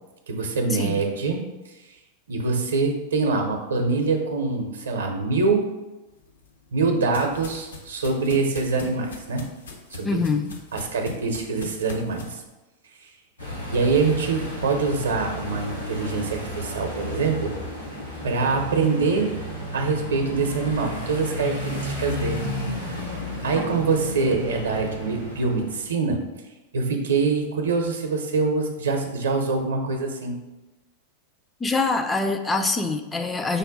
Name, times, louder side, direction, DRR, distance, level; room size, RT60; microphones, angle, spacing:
voice 1, 0.3-1.4 2.3-5.7 6.7-9.5 9.9-10.2 10.7-12.4 13.7-17.6 18.2-19.4 19.7-22.5 23.4-26.3 26.7-30.4, right 4 dB, 65° right, 4 dB, 0.6 m, -24 dB
sound 1, 6.2-12.3, left 2 dB, 70° left, 0.6 m, -41 dB
voice 2, 10.0-10.6 31.6-33.6, left 3 dB, 15° left, 6 dB, 0.3 m, -24 dB
sound 2, 13.4-25.8, left 1 dB, 90° left, 1.1 m, -33 dB
5.2 x 2.2 x 3.9 m, 1.1 s
figure-of-eight pair, 90°, 0 cm